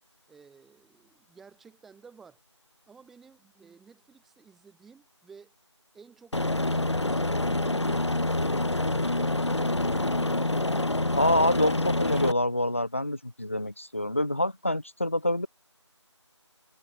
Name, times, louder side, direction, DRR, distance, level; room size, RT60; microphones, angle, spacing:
voice 1, 0.3-2.4 2.9-5.5 5.9-10.7, right 5 dB, ahead, 4.2 m, -53 dB
Aircraft, 6.3-12.3, left 2 dB, 65° left, 4.5 m, -26 dB
voice 2, 11.2-15.5, left 1 dB, 25° left, 0.7 m, -26 dB
figure-of-eight pair, 175°, 16 cm